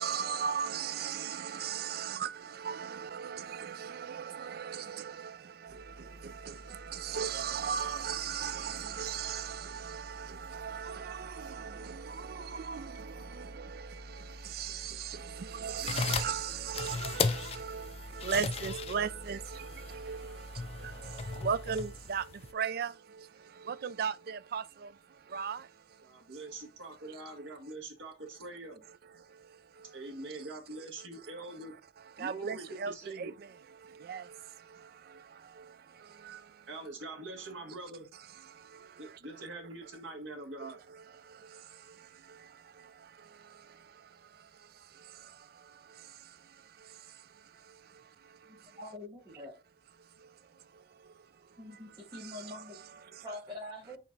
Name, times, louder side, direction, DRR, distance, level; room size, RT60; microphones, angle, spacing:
voice 1, 0.0-25.0 25.3-25.7 29.2-30.0 32.2-33.3 33.8-36.6 38.5-39.2 40.6-44.5 44.9-46.4 46.8-47.2 47.6-48.6 50.2-50.3 50.7-51.1 51.7-52.6 53.0-53.3, right 7 dB, 55° right, 0.4 m, -39 dB
sound 1, 5.7-22.2, equal, 50° left, 2.1 m, -49 dB
sound 2, 15.7-22.5, left 5 dB, 35° left, 0.4 m, -37 dB
voice 2, 26.0-28.8 29.9-31.7 32.2-33.4 36.7-38.1 39.0-40.8, right 2 dB, 85° right, 1.7 m, -44 dB
voice 3, 48.8-49.5 51.6-52.8 53.2-54.0, left 1 dB, 25° right, 1.6 m, -44 dB
5.8 x 4.2 x 3.8 m
head